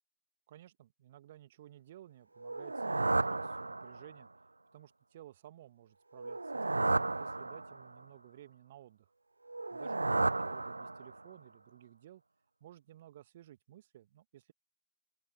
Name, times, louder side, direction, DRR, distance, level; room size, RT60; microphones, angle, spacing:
voice 1, 0.5-4.3 4.7-9.1 9.7-12.2 12.6-14.5, right 13 dB, 45° right, 2.2 m, -55 dB
sound 1, 2.4-4.2 6.2-8.0 9.5-11.3, right 2 dB, 80° right, 0.5 m, -33 dB
open air
figure-of-eight pair, 120°, 0 cm